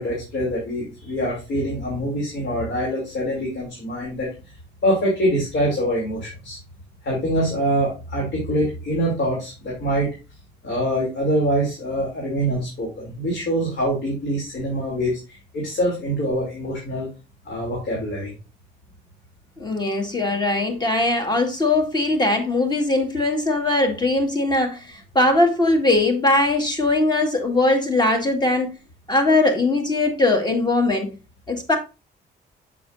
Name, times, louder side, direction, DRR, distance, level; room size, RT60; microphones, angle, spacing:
voice 1, 0.0-4.3 4.8-6.6 7.0-10.1 10.6-17.1 17.4-18.3, equal, 65° left, 3.2 m, -24 dB
voice 2, 19.6-28.8 29.1-31.1 31.5-31.8, left 2 dB, 20° left, 2.0 m, -20 dB
7.7 x 6.1 x 2.7 m
cardioid pair, 90°, 20 cm